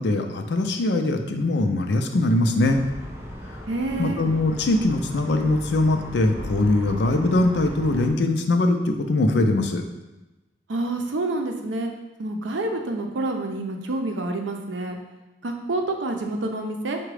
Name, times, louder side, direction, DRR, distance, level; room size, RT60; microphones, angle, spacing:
voice 1, 0.0-2.8 3.5-3.6 4.0-9.8, left 2 dB, 70° left, 5 dB, 0.5 m, -22 dB
sound 1, 2.6-8.1, equal, 15° right, 0.5 m, -37 dB
voice 2, 3.7-4.2 10.7-11.9 12.2-15.0 15.4-17.0, right 2 dB, 90° right, 3 dB, 0.6 m, -28 dB
4.8 x 2.2 x 4.8 m, 1.1 s
head